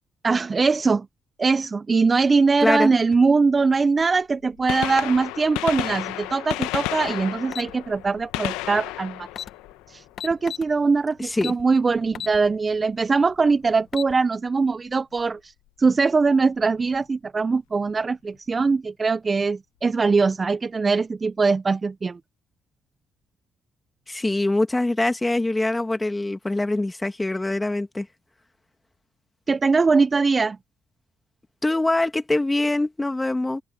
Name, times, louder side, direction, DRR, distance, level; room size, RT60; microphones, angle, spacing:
voice 1, 0.2-1.1 1.4-9.3 9.9-15.5 15.8-22.2 29.5-30.6, right 4 dB, 35° right, 0.6 m, -21 dB
voice 2, 2.6-2.9 11.2-11.5 24.1-28.1 31.6-33.6, left 2 dB, 15° left, 2.5 m, -23 dB
Gunshot gunfire, 4.0-4.1 4.5-10.4 12.3-12.5 13.5-13.6 15.2-15.3 16.7-16.8 17.0-17.1, left 18 dB, 85° left, 1.1 m, -32 dB
sound 1, 7.5-7.7 8.9-9.0 9.3-9.5 10.2-10.7 11.4-11.6 12.1-12.4 12.8-12.9 13.7-14.1, left 9 dB, 60° left, 1.0 m, -33 dB
supercardioid pair, 55°, 0 cm